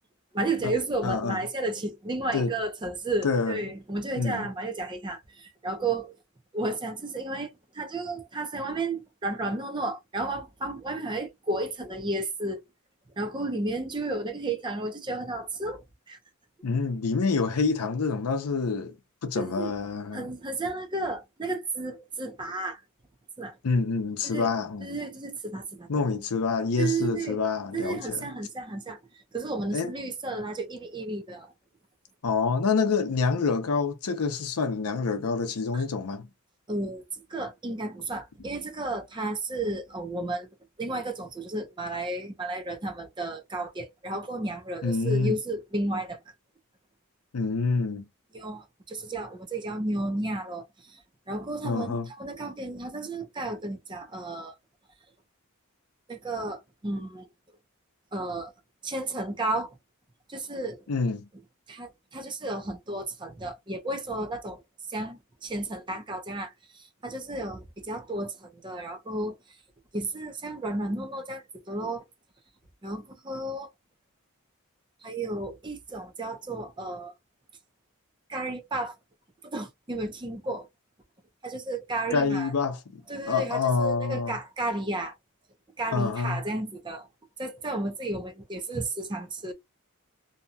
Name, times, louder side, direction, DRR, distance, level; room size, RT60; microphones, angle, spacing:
voice 1, 0.3-6.2 6.5-7.5 7.7-12.6 13.2-16.2 19.4-19.7 20.1-22.8 23.4-23.6 24.2-24.5 24.8-26.0 26.8-27.4 27.7-29.0 29.3-31.5 35.7-35.8 36.7-40.5 40.8-46.2 48.3-51.0 51.3-54.5 56.1-57.3 58.1-58.5 58.8-59.7 60.3-60.8 61.7-64.6 64.9-69.4 69.9-72.0 72.8-73.7 75.0-77.1 78.3-78.9 79.4-80.7 81.4-82.5 83.1-85.1 85.8-87.1 87.4-89.5, right 2 dB, 20° right, 0.6 m, -33 dB
voice 2, 1.0-1.4 2.3-2.5 3.2-3.6 4.2-4.5 16.6-19.0 19.2-20.3 23.6-24.9 25.9-28.3 29.7-29.9 32.2-36.3 44.8-45.4 47.3-48.1 51.6-52.1 60.9-61.3 82.1-84.4 85.9-86.4, left 4 dB, 85° left, 0.6 m, -27 dB
2.7 x 2.2 x 2.6 m
head